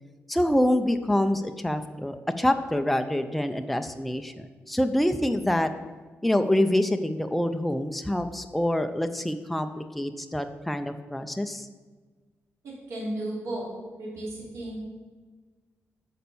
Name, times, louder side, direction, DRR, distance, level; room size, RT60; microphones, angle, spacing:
voice 1, 0.3-5.7 6.2-11.7, left 1 dB, ahead, 7 dB, 0.4 m, -26 dB
voice 2, 12.6-13.7 14.0-14.8, right 1 dB, 85° right, -5 dB, 3.2 m, -34 dB
8.8 x 5.2 x 6.9 m, 1.4 s
wide cardioid pair, 175°, 5 cm